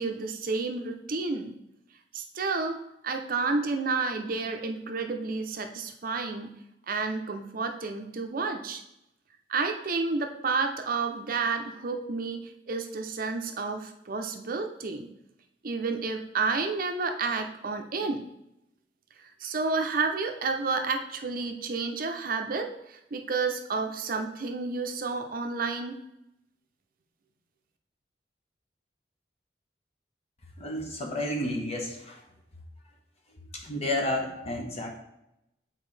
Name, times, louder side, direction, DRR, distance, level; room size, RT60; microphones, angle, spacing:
voice 1, 0.0-1.6 2.1-6.5 6.9-8.8 9.5-15.1 15.6-18.2 19.4-26.0, right 4 dB, 55° right, 5 dB, 0.6 m, -30 dB
voice 2, 30.6-32.2 33.5-34.9, left 1 dB, 35° left, 1 dB, 1.2 m, -31 dB
8.1 x 4.1 x 3.2 m, 0.83 s
head